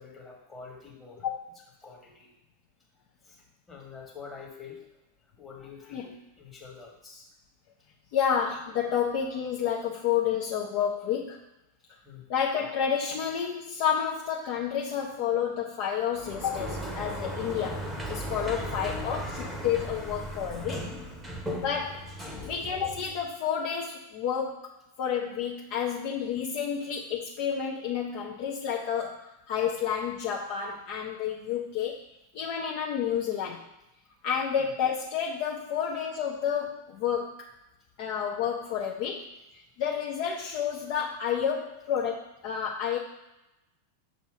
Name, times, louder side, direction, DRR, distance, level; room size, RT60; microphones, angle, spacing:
voice 1, 0.0-1.2 1.8-2.3 3.2-3.4 3.7-4.8 5.4-7.3 12.0-12.2 18.4-19.3 20.3-21.5 22.3-22.6 34.6-34.7, left 5 dB, 15° left, -2 dB, 1.5 m, -46 dB
voice 2, 8.1-11.4 12.3-20.8 21.6-22.1 22.5-24.7 25.0-32.0 32.3-33.6 34.2-37.5 38.0-39.2 39.8-43.0, left 8 dB, 45° left, -2 dB, 0.6 m, -30 dB
Sliding door, 16.1-23.3, right 1 dB, 10° right, 0.9 m, -37 dB
6.4 x 2.7 x 5.6 m, 0.93 s
figure-of-eight pair, 90°, 0 cm